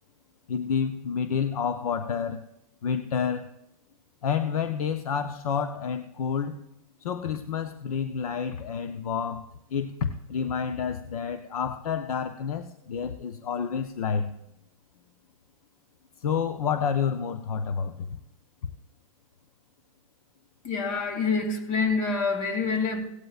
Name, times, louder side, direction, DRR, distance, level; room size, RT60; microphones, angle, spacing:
voice 1, 0.5-2.4 2.8-3.5 4.2-6.7 7.0-14.3 16.2-18.1, left 6 dB, 80° left, 0.8 m, -29 dB
voice 2, 20.6-23.0, left 4 dB, 55° left, 2.7 m, -26 dB
17.5 x 14.0 x 2.4 m
hypercardioid pair, 120°, 18 cm